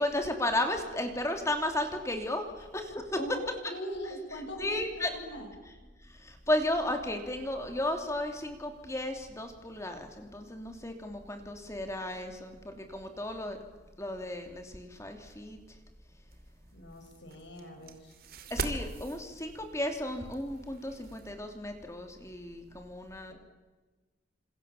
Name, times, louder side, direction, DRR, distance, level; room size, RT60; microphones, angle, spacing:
voice 1, 0.0-3.2 4.6-5.1 6.2-13.6 14.0-15.6 18.5-23.3, left 1 dB, 15° left, 5 dB, 3.1 m, -34 dB
voice 2, 3.2-5.5 16.7-18.1 23.3-23.4, equal, 65° left, 4 dB, 6.6 m, -41 dB
sound 1, 16.3-21.3, right 3 dB, 50° right, 2.6 m, -42 dB
28.5 x 27.0 x 7.3 m, 1.3 s
head